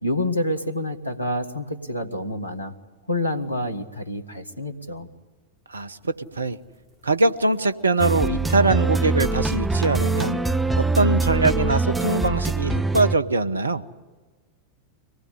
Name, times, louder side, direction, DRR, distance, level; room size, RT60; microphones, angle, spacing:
voice 1, 0.0-2.7 3.1-5.1, left 1 dB, 80° left, 9 dB, 1.7 m, -28 dB
voice 2, 5.7-6.6 7.0-10.4 10.8-13.8, right 3 dB, 75° right, 12 dB, 1.0 m, -22 dB
sound 1, 5.8-12.5, equal, 20° right, 6.8 m, -52 dB
sound 2, 8.0-13.2, right 3 dB, 5° right, 0.8 m, -23 dB
24.5 x 18.5 x 10.0 m, 1.3 s
figure-of-eight pair, 90°, 0 cm